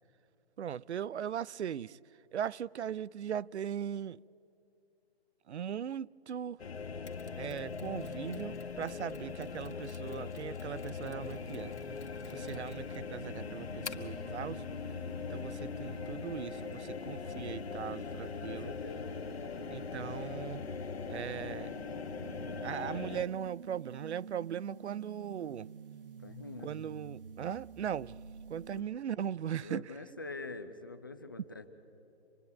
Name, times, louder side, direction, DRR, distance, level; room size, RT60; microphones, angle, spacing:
voice 1, 0.6-2.0 2.3-4.2 5.5-6.6 7.4-11.7 12.3-14.6 15.3-18.7 19.7-20.6 21.1-21.7 22.6-25.7 26.6-28.2 28.5-29.9, right 9 dB, 85° right, 0.6 m, -39 dB
sound 1, 6.6-23.2, left 5 dB, 70° left, 1.3 m, -41 dB
Mechanisms, 7.1-14.2, left 5 dB, 90° left, 1.9 m, -53 dB
sound 2, 11.2-28.8, right 6 dB, 55° right, 1.1 m, -50 dB
voice 2, 18.6-19.2 26.2-26.7 28.7-28.9 29.6-31.7, left 3 dB, 20° left, 0.6 m, -45 dB
26.5 x 21.0 x 9.4 m
hypercardioid pair, 170°, 33 cm